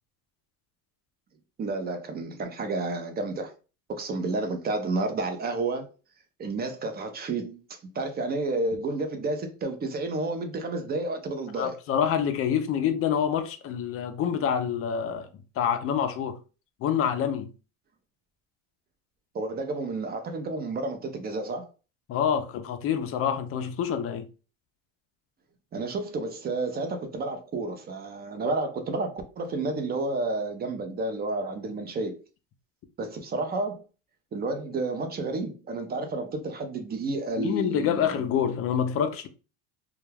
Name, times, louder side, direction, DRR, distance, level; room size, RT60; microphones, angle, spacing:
voice 1, 1.6-3.5 3.9-5.9 6.4-7.6 7.9-11.8 19.3-21.7 25.7-32.2 33.0-33.8 34.3-38.1, right 2 dB, 25° right, 0.4 m, -31 dB
voice 2, 11.6-15.3 15.6-16.4 16.8-17.5 22.1-24.3 37.4-39.3, left 8 dB, 35° left, 0.4 m, -27 dB
2.3 x 2.2 x 3.2 m
cardioid pair, 120°, 39 cm